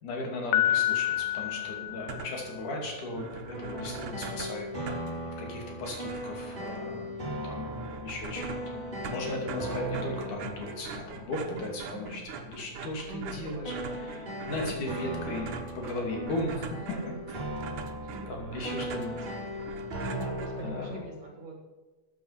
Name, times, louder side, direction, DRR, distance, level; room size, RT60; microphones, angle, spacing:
voice 1, 0.0-5.1 5.4-7.8 8.0-17.0 18.3-19.2 19.5-19.7 20.6-21.0, left 2 dB, 75° left, 0 dB, 4.1 m, -37 dB
Piano, 0.5-2.6, left 13 dB, 90° left, 2.2 m, -28 dB
sound 1, 1.1-21.0, equal, 15° right, 3.7 m, -39 dB
sound 2, 1.9-2.6 2.9-3.0 3.2-21.0, right 5 dB, 75° right, 2.6 m, -43 dB
voice 2, 11.5-12.2 13.1-14.5 16.9-17.1 18.0-18.3 20.1-21.6, right 1 dB, 50° right, 1 dB, 3.2 m, -44 dB
14.5 x 9.2 x 5.8 m, 1.2 s
omnidirectional pair, 3.6 m